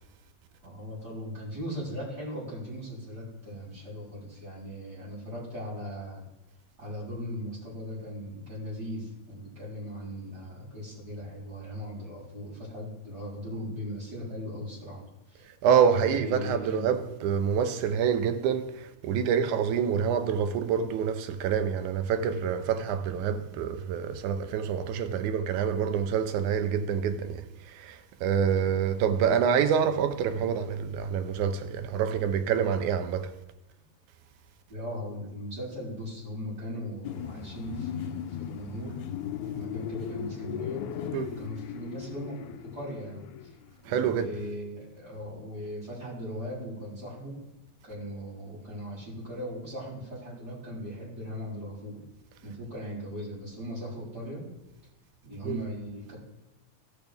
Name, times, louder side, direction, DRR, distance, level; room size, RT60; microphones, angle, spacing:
voice 1, 0.6-6.2 6.8-15.4 16.0-16.9 34.7-39.0 39.5-40.8 41.4-43.5 43.8-47.4 47.8-52.0 52.4-54.5 55.2-56.2, equal, 30° right, 4.5 m, -38 dB
voice 2, 15.6-33.3 41.1-41.4 43.9-44.3 55.5-55.6, right 7 dB, 85° right, 2.2 m, -27 dB
sound 1, 37.0-43.7, left 9 dB, 85° left, 2.0 m, -37 dB
16.5 x 6.2 x 3.5 m
omnidirectional pair, 3.4 m